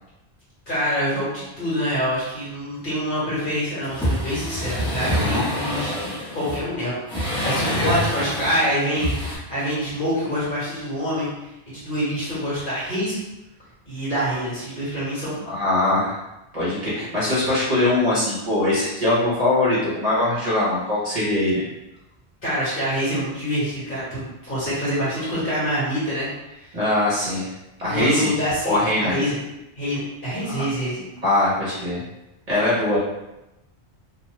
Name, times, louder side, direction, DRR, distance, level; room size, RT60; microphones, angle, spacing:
voice 1, 0.7-11.3 11.7-13.2 13.8-15.4 22.4-26.3 26.5-26.7 27.9-29.4 29.7-31.0, equal, 50° left, -9 dB, 1.5 m, -26 dB
sound 1, 3.8-6.6 7.1-8.7 8.9-9.4, equal, 5° left, 0.8 m, -26 dB
voice 2, 15.4-16.2 16.5-21.6 26.7-27.5 27.8-28.3 28.6-29.1 31.2-32.0 32.5-33.0, left 1 dB, 40° right, -9 dB, 0.8 m, -21 dB
2.7 x 2.1 x 3.0 m, 0.94 s
omnidirectional pair, 1.1 m